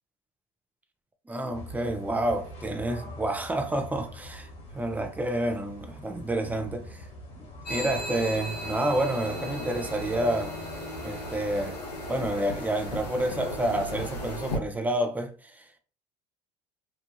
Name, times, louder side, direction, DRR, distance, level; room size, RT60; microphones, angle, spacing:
voice 1, 1.3-7.1 7.4-10.5 11.0-11.8 12.1-15.8, right 1 dB, 10° right, 0.6 m, -29 dB
sound 1, 1.5-14.0, left 1 dB, 35° left, 1.4 m, -44 dB
sound 2, 7.7-14.6, left 1 dB, 90° left, 0.9 m, -36 dB
3.0 x 2.3 x 2.6 m
hypercardioid pair, 75°, 20 cm